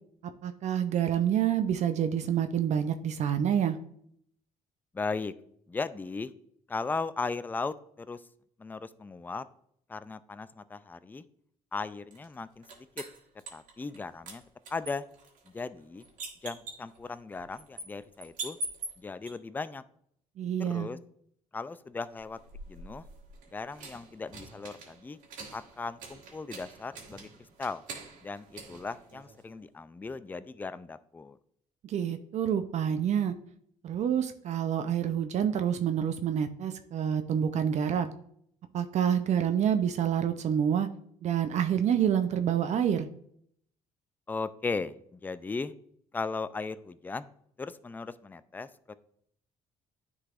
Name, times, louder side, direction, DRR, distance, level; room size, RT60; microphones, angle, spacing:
voice 1, 0.4-3.8 20.4-20.9 31.8-33.4 33.8-38.1 38.7-40.9 41.2-43.1, right 9 dB, 55° right, 9 dB, 0.5 m, -27 dB
voice 2, 4.9-5.3 5.7-6.3 6.7-8.2 8.6-9.4 9.9-11.2 11.7-13.0 13.5-14.4 14.7-15.0 15.5-16.0 16.4-18.6 19.0-19.8 20.6-21.0 21.5-22.4 22.7-23.0 23.5-25.2 25.5-27.3 27.6-27.8 28.2-31.4 44.3-45.7 46.1-47.3 47.6-48.9, left 4 dB, 15° left, 14 dB, 0.3 m, -37 dB
sound 1, 12.1-14.0 14.3-19.3 22.1-29.6, right 2 dB, 70° right, 1.5 m, -45 dB
10.0 x 4.0 x 2.4 m, 0.67 s
supercardioid pair, 80°, 14 cm